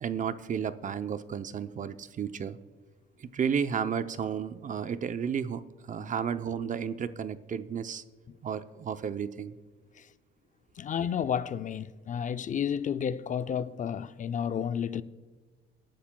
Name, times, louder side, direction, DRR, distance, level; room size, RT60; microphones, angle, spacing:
voice 1, 0.0-2.6 3.2-8.0 8.4-9.6, right 7 dB, 40° right, 0.6 m, -32 dB
voice 2, 10.8-15.0, left 8 dB, 40° left, 0.4 m, -31 dB
22.5 x 11.5 x 2.3 m
cardioid pair, 105°, 20 cm